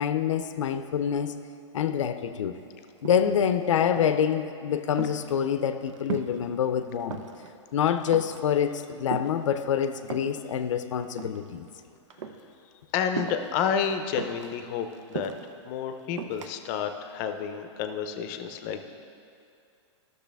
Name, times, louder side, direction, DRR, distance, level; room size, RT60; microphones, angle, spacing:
voice 1, 0.0-1.3 1.7-2.6 3.0-7.2 7.7-11.7, left 8 dB, 85° left, 11 dB, 0.6 m, -26 dB
sound 1, 2.5-2.6 2.9-3.5 4.0-4.4 4.7-6.5 6.8-7.5 7.9-8.5 9.1-10.4 11.0-11.8 12.1-12.4 13.1-13.6 14.2-15.5 16.2-16.5, right 7 dB, 85° right, 0.7 m, -37 dB
voice 2, 12.9-15.3 15.7-18.9, left 7 dB, 35° left, 8 dB, 0.6 m, -30 dB
12.0 x 6.6 x 3.4 m, 2.4 s
hypercardioid pair, 145°, 16 cm